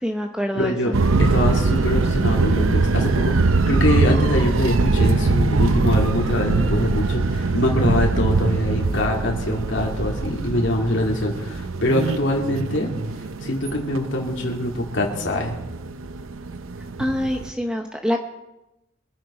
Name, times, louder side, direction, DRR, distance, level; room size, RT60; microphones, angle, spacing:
voice 1, 0.0-1.0 17.0-18.2, equal, 5° right, 3 dB, 0.7 m, -25 dB
voice 2, 0.5-0.9 1.2-12.9 13.2-15.6, left 1 dB, 65° left, -1 dB, 2.3 m, -24 dB
sound 1, 0.9-17.5, right 3 dB, 85° right, 0.7 m, -22 dB
23.5 x 10.0 x 4.3 m, 0.95 s
head